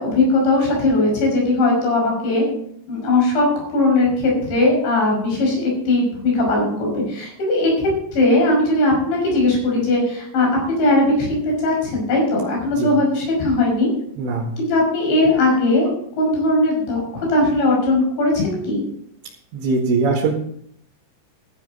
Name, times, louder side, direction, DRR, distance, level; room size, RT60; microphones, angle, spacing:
voice 1, 0.0-2.4 2.9-3.5 3.7-13.9 14.6-18.8, left 2 dB, 80° left, -1 dB, 8.0 m, -19 dB
voice 2, 14.2-14.5 19.5-20.3, right 4 dB, 85° right, -5 dB, 4.2 m, -21 dB
16.0 x 12.0 x 4.0 m, 0.68 s
omnidirectional pair, 5.1 m